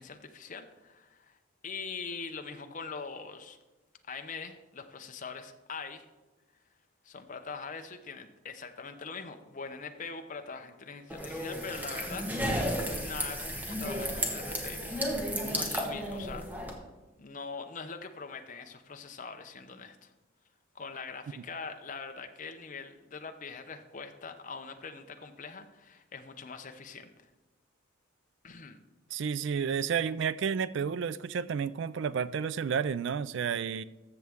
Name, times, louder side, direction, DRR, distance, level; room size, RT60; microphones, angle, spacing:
voice 1, 0.0-1.4 1.6-3.6 4.1-6.1 7.0-12.7 12.9-15.1 15.4-16.7 17.2-20.1 20.7-27.1 28.4-28.8, left 5 dB, 35° left, 6 dB, 0.7 m, -43 dB
sound 1, 11.1-16.7, equal, 10° right, 1.0 m, -33 dB
voice 2, 29.1-33.8, right 6 dB, 60° right, 17 dB, 0.3 m, -31 dB
13.5 x 6.9 x 3.5 m, 1.1 s
head